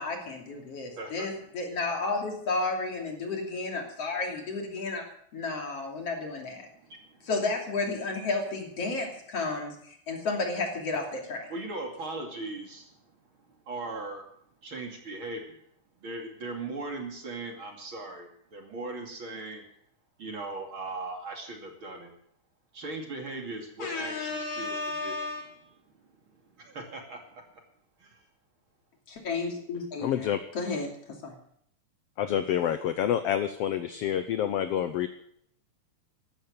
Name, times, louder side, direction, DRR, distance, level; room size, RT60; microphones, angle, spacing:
voice 1, 0.0-6.7 7.2-11.5 23.8-25.4 29.1-31.3, left 3 dB, 50° left, 2 dB, 3.8 m, -32 dB
voice 2, 0.7-1.3 6.6-7.3 11.5-12.9 13.7-14.3 14.6-15.6 16.0-19.6 20.2-22.1 22.7-25.1 26.6-27.2 28.0-28.2, right 2 dB, 45° right, 2 dB, 3.2 m, -39 dB
voice 3, 30.0-30.4 32.2-35.1, left 10 dB, 70° left, 10 dB, 1.6 m, -28 dB
15.0 x 13.0 x 6.6 m, 0.68 s
omnidirectional pair, 3.5 m